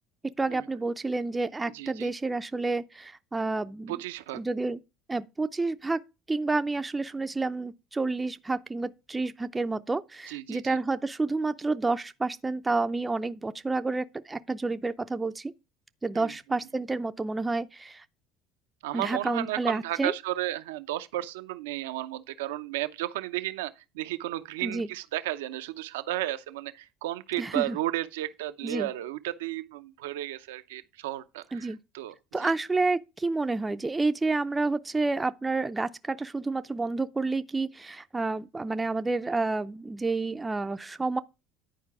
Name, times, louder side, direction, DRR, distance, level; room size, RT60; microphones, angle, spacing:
voice 1, 0.4-4.0 4.3-4.8 5.1-6.0 6.3-15.5 16.0-18.0 18.9-20.1 24.6-24.9 27.4-27.8 28.6-28.9 31.5-31.8 32.3-41.2, right 3 dB, 15° right, 0.5 m, -29 dB
voice 2, 1.6-2.1 3.9-4.4 10.3-10.8 16.1-16.3 18.8-32.5, right 15 dB, 85° right, 0.6 m, -33 dB
10.5 x 4.6 x 4.7 m
supercardioid pair, 80°, 0 cm